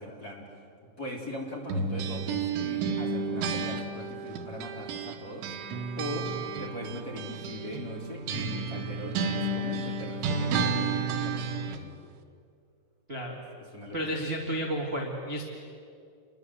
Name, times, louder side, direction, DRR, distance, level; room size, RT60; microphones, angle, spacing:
voice 1, 0.0-5.5 6.0-6.3 6.6-11.9 13.7-14.2, left 1 dB, 20° left, -2 dB, 3.7 m, -40 dB
sound 1, 1.7-5.2 5.4-11.8, right 4 dB, 80° right, 3.8 m, -31 dB
voice 2, 13.9-15.4, right 1 dB, 15° right, -1 dB, 2.2 m, -32 dB
29.5 x 23.5 x 8.0 m, 2.4 s
omnidirectional pair, 5.4 m